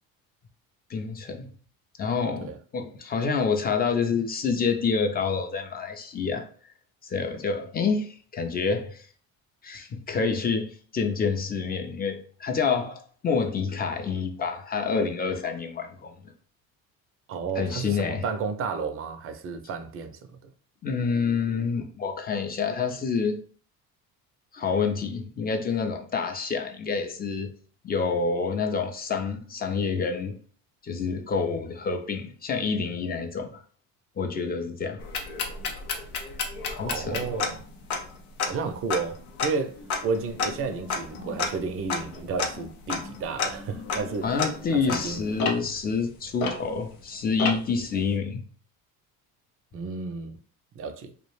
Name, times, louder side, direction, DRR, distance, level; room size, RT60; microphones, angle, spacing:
voice 1, 0.9-1.5 2.0-6.5 7.0-9.1 9.6-16.2 17.6-18.2 20.8-23.4 24.5-27.5 27.8-30.4 30.8-33.6 34.2-35.0 36.7-37.3 44.2-48.5, left 5 dB, 25° left, 0.4 m, -28 dB
voice 2, 17.3-20.5 36.8-37.6 38.5-39.8 40.0-44.3 44.8-45.2 49.7-50.4 50.7-51.1, right 5 dB, 35° right, 0.5 m, -32 dB
sound 1, 35.0-47.0 47.4-47.8, left 4 dB, 90° left, 0.6 m, -32 dB
2.3 x 2.1 x 3.1 m
hypercardioid pair, 70°, 42 cm